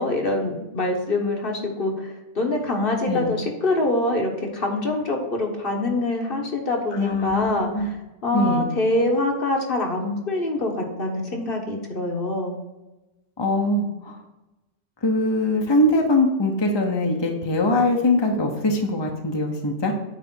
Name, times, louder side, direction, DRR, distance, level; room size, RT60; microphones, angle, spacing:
voice 1, 0.0-7.9 8.2-12.6, left 2 dB, 60° left, 1 dB, 1.5 m, -25 dB
voice 2, 6.9-7.9 8.3-8.7 13.4-14.2 15.0-19.9, left 1 dB, 25° left, 2 dB, 0.8 m, -22 dB
8.9 x 3.4 x 6.1 m, 1.0 s
omnidirectional pair, 1.1 m